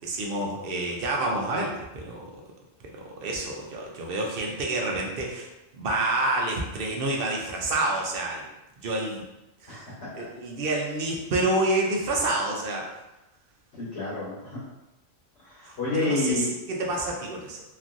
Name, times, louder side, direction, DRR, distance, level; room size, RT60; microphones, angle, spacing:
voice 1, 0.0-2.3 2.9-5.5 5.7-8.4 8.8-9.2 9.6-9.8 10.1-12.9 15.6-17.6, right 2 dB, 60° right, -1 dB, 0.7 m, -28 dB
voice 2, 9.7-10.3 13.7-14.6 15.4-16.5, left 2 dB, 60° left, -8 dB, 1.1 m, -30 dB
3.0 x 2.5 x 2.4 m, 0.95 s
omnidirectional pair, 1.2 m